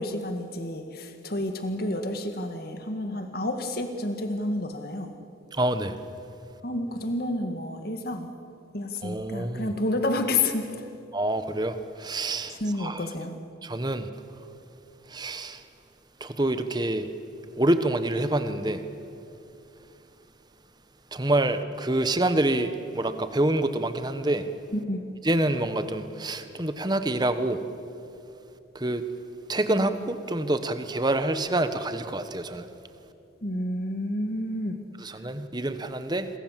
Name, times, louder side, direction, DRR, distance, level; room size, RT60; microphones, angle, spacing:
voice 1, 0.0-5.1 6.6-8.3 8.7-10.9 12.5-13.3 24.7-25.0 33.4-34.8, left 2 dB, 50° left, 7 dB, 2.0 m, -30 dB
voice 2, 5.6-5.9 9.0-9.7 11.1-13.0 13.6-14.1 15.1-15.6 16.2-17.0 17.6-18.8 21.1-24.5 25.2-27.6 28.7-29.0 29.5-32.7 35.0-36.3, right 1 dB, 20° right, 10 dB, 1.1 m, -27 dB
28.5 x 22.5 x 7.5 m, 2.8 s
head